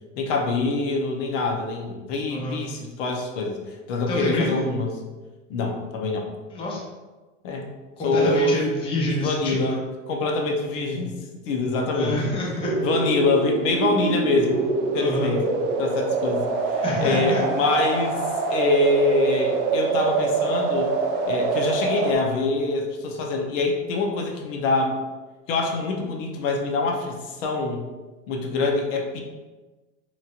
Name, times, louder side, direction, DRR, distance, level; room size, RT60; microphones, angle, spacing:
voice 1, 0.2-4.9 5.5-6.3 7.4-7.7 8.0-8.6 9.2-9.8 10.1-11.1 11.5-12.3 12.8-14.7 14.9-15.5 15.8-18.2 18.5-21.0 21.3-25.0 25.5-27.9 28.3-29.2, left 3 dB, 75° left, 1 dB, 0.7 m, -25 dB
voice 2, 4.1-4.7 6.5-6.8 8.0-9.8 11.9-12.7 14.9-15.3 16.8-17.4, left 1 dB, 15° left, -3 dB, 0.5 m, -27 dB
sound 1, 12.6-22.1, right 4 dB, 65° right, 0.6 m, -25 dB
3.0 x 2.7 x 2.4 m, 1.2 s
supercardioid pair, 135°, 37 cm